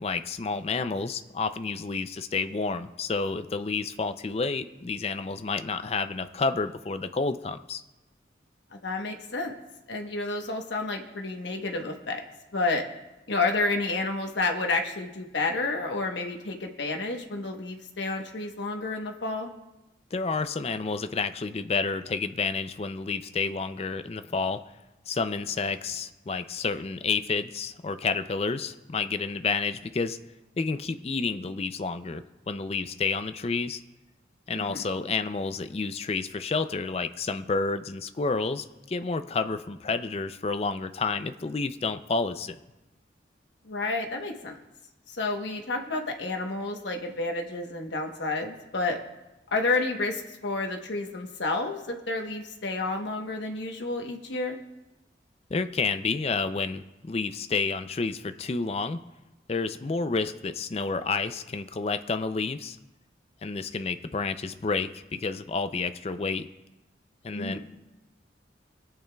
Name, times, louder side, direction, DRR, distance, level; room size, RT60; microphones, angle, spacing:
voice 1, 0.0-7.8 20.1-24.6 25.1-30.2 30.6-33.8 34.5-42.6 55.5-59.0 59.5-62.8 63.4-66.5 67.2-67.6, left 4 dB, 35° left, 10 dB, 0.4 m, -30 dB
voice 2, 8.7-9.5 9.9-12.2 12.5-12.8 13.3-19.5 34.5-34.9 43.6-44.6 45.1-49.0 49.5-54.6 67.3-67.6, left 3 dB, 75° left, 3 dB, 1.1 m, -30 dB
23.5 x 8.8 x 2.3 m, 1.0 s
head